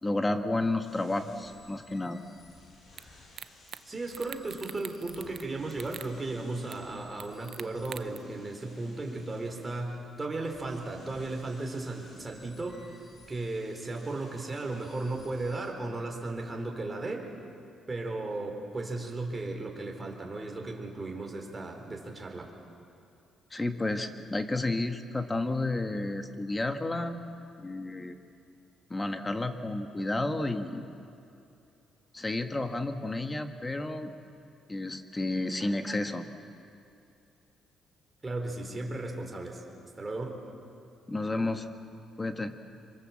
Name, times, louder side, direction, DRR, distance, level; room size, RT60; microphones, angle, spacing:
voice 1, 0.0-2.2 23.5-27.2 27.6-28.1 28.9-30.8 32.1-34.1 34.7-36.2 41.1-41.7 42.2-42.5, left 2 dB, 20° left, 7 dB, 1.7 m, -31 dB
sound 1, 0.8-15.7, left 2 dB, 60° left, 7.9 m, -57 dB
sound 2, 3.0-3.1 3.4-3.8 4.1-5.4 5.7-6.1 6.7-6.8 7.2-8.2, right 9 dB, 65° right, 0.7 m, -43 dB
voice 2, 3.9-12.9 13.3-17.3 17.9-22.5 38.2-39.6 40.0-40.4, right 2 dB, 25° right, 2 dB, 4.3 m, -35 dB
27.0 x 24.5 x 7.5 m, 2.6 s
cardioid pair, 90°, 0 cm